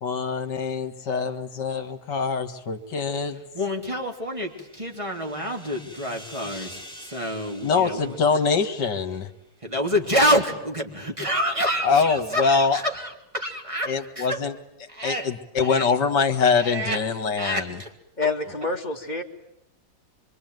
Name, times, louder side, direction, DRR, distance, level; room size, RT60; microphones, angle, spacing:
voice 1, 0.0-3.4 7.6-9.3 11.8-12.8 13.8-14.6 15.0-17.8, left 5 dB, 60° left, 8 dB, 2.4 m, -24 dB
voice 2, 3.5-8.2 9.6-14.4 14.9-15.3 15.6-15.9 16.5-17.0 17.4-17.9, equal, 15° right, 2 dB, 3.4 m, -27 dB
sound 1, 3.7-9.3, equal, ahead, 4.6 m, -47 dB
voice 3, 18.2-19.2, left 3 dB, 20° left, 2 dB, 2.6 m, -27 dB
25.5 x 24.5 x 9.4 m, 0.78 s
omnidirectional pair, 2.2 m